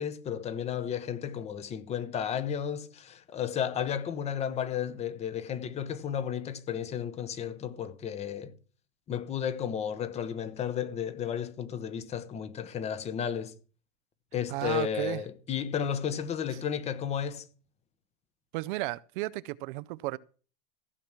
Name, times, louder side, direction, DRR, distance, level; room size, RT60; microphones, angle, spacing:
voice 1, 0.0-8.5 9.1-13.5 14.3-17.4, left 8 dB, 20° left, 0.9 m, -33 dB
voice 2, 14.5-15.2 18.5-20.2, right 20 dB, 50° right, 0.5 m, -33 dB
15.0 x 6.0 x 7.4 m
supercardioid pair, 165°, 32 cm